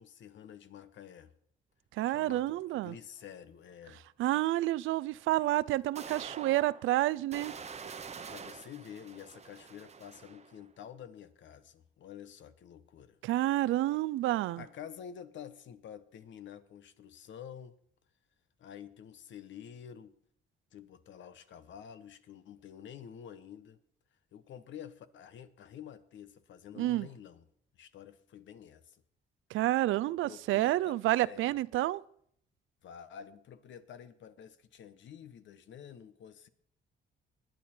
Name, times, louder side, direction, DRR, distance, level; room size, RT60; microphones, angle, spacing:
voice 1, 0.0-1.3 2.0-4.0 7.8-13.2 14.6-17.8 18.6-20.2 20.7-23.8 24.3-27.5 27.7-29.0 29.9-31.6 32.8-36.5, left 9 dB, 70° left, 1.1 m, -49 dB
voice 2, 1.9-2.9 4.2-7.5 13.2-14.6 26.8-27.1 29.5-32.0, right 16 dB, 80° right, 0.5 m, -29 dB
sound 1, 3.2-3.3 5.1-5.2 6.0-10.6, right 5 dB, 35° right, 0.9 m, -46 dB
20.5 x 9.2 x 4.4 m
cardioid pair, 90°, 20 cm